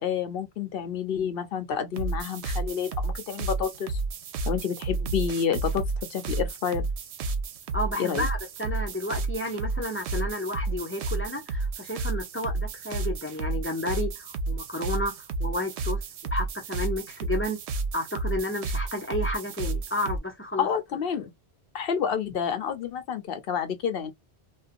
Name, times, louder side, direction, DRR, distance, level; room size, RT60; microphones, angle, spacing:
voice 1, 0.0-4.0 4.5-6.9 8.0-8.2 20.6-21.3 21.7-24.1, left 7 dB, 65° left, 0.8 m, -29 dB
sound 1, 2.0-20.2, right 3 dB, 85° right, 0.9 m, -31 dB
voice 2, 7.7-15.1 15.4-16.0 16.3-17.6 17.9-20.7, left 1 dB, 15° left, 0.7 m, -31 dB
2.5 x 2.2 x 2.5 m
omnidirectional pair, 1.1 m